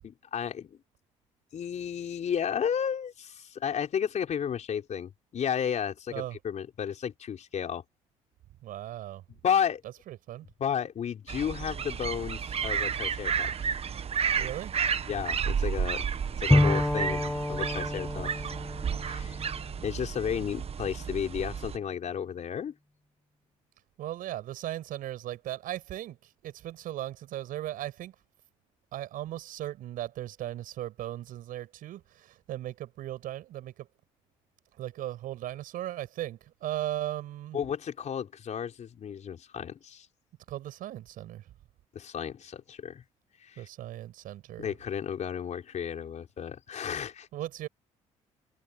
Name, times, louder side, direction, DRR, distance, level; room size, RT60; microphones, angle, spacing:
voice 1, 0.0-0.8 1.5-7.8 9.3-9.8 10.6-13.7 15.1-16.1 16.4-18.4 19.0-19.5 19.8-22.7 37.5-40.1 41.9-43.0 43.4-43.7 44.6-47.3, left 8 dB, 50° left, 4.5 m, -33 dB
voice 2, 8.6-9.2 10.1-10.5 14.3-14.7 24.0-26.2 26.4-28.1 28.9-33.9 34.8-37.6 40.5-41.4 43.6-44.7 47.3-47.7, right 13 dB, 70° right, 6.3 m, -37 dB
sound 1, 11.3-21.8, right 7 dB, 40° right, 1.4 m, -32 dB
Bowed string instrument, 16.5-20.2, left 1 dB, 10° left, 0.6 m, -28 dB
supercardioid pair, 65°, 15 cm